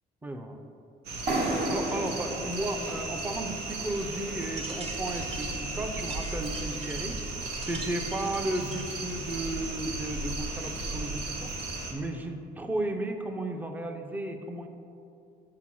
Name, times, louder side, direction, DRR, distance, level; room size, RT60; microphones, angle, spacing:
voice 1, 0.2-0.6 1.7-11.6 11.9-14.7, right 1 dB, 10° right, 5 dB, 0.6 m, -34 dB
sound 1, 1.0-11.9, right 2 dB, 85° right, 1.2 m, -35 dB
sound 2, 1.3-4.9, right 1 dB, 60° right, 1.7 m, -34 dB
sound 3, 4.4-9.0, right 3 dB, 40° right, 1.2 m, -43 dB
5.8 x 5.3 x 6.2 m, 2.6 s
cardioid pair, 110°, 17 cm